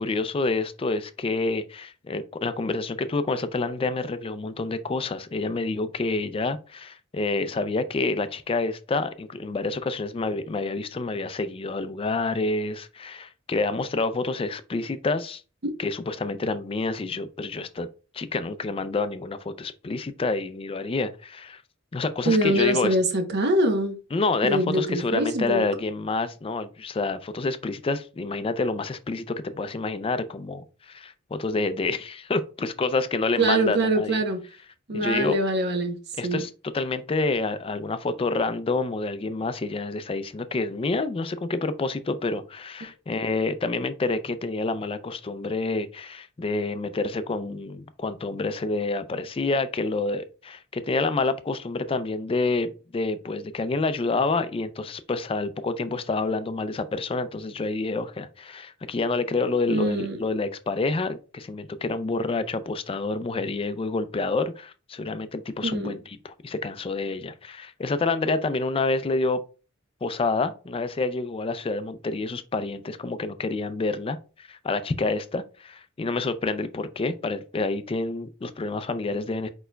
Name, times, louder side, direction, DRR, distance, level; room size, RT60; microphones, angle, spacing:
voice 1, 0.0-15.4 15.8-17.9 18.1-21.6 21.9-23.0 24.1-34.2 34.9-35.4 36.2-69.4 70.0-79.5, left 3 dB, 30° left, 0.4 m, -28 dB
voice 2, 22.3-24.0 24.4-25.6 33.4-34.4 34.9-36.0 36.2-36.4 59.7-60.2 65.6-66.0, right 1 dB, 55° right, 0.8 m, -24 dB
4.7 x 4.5 x 2.2 m
head